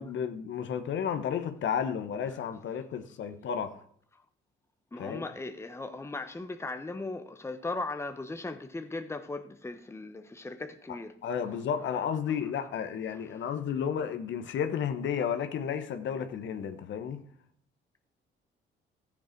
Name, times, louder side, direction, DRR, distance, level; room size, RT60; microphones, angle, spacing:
voice 1, 0.0-3.8 5.0-5.2 11.2-17.2, left 7 dB, 70° left, 1.1 m, -32 dB
voice 2, 4.9-11.1 13.1-13.2, left 2 dB, 15° left, 0.9 m, -38 dB
14.0 x 7.5 x 4.5 m
cardioid pair, 90°, 20 cm